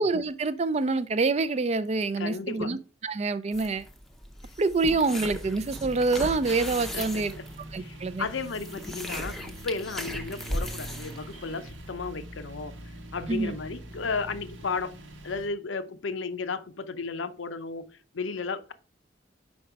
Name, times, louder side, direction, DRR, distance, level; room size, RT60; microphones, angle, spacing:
voice 1, 0.0-2.8 3.0-3.8 4.6-7.3 7.7-8.3 13.3-13.5, right 3 dB, 35° right, 0.4 m, -26 dB
voice 2, 2.2-2.7 6.9-7.5 7.8-12.7 13.1-14.9 15.2-18.7, left 4 dB, 85° left, 0.6 m, -34 dB
sound 1, 3.5-12.3, equal, ahead, 0.6 m, -38 dB
sound 2, 5.2-15.5, right 1 dB, 85° right, 1.1 m, -44 dB
5.2 x 4.9 x 4.5 m
head